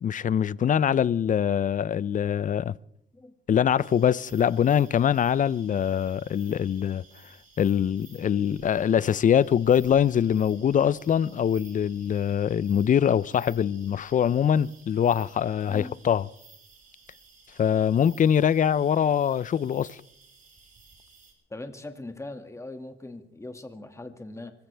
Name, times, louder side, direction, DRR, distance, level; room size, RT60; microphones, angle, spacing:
voice 1, 0.0-2.7 3.5-7.0 7.6-16.2 17.6-20.0, left 8 dB, 40° left, 0.5 m, -23 dB
sound 1, 3.8-21.3, right 4 dB, 40° right, 4.9 m, -55 dB
voice 2, 15.6-16.0 21.5-24.5, left 2 dB, 15° left, 2.0 m, -40 dB
25.0 x 15.0 x 3.4 m
cardioid pair, 90°, 20 cm